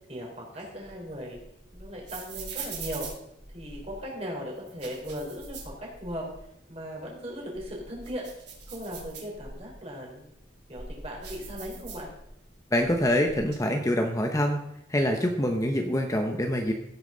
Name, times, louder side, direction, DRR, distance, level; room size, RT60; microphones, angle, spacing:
voice 1, 0.1-1.4 1.7-3.1 3.5-6.3 6.7-8.3 8.7-10.3 10.7-12.1, equal, 35° right, -2 dB, 3.9 m, -38 dB
sound 1, 0.5-4.0 4.6-6.4 6.7-6.8 7.3-9.7 10.3-12.5 12.7-13.5, right 4 dB, 60° right, 3.6 m, -42 dB
voice 2, 12.7-14.6 14.9-16.7, left 1 dB, 15° left, 3 dB, 0.8 m, -25 dB
16.0 x 8.8 x 3.9 m, 0.81 s
head